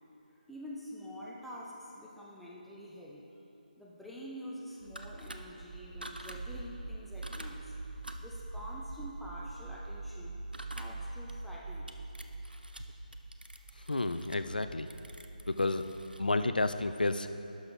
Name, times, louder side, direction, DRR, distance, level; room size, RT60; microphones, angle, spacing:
voice 1, 0.3-3.4 3.8-7.7 8.2-10.3 10.7-11.9, equal, ahead, -5 dB, 0.5 m, -47 dB
sound 1, 4.8-17.0, right 2 dB, 70° right, 1.6 m, -44 dB
sound 2, 4.8-5.4 6.0-6.4 7.2-7.5 8.0-8.3 10.5-10.9 11.3-11.4 11.9-12.8 13.1-16.2, right 1 dB, 90° right, 0.6 m, -48 dB
voice 2, 13.9-14.9 15.5-15.8 16.2-17.3, left 2 dB, 70° left, 10 dB, 0.5 m, -30 dB
11.5 x 6.2 x 4.1 m, 2.9 s
figure-of-eight pair, 155°, 5 cm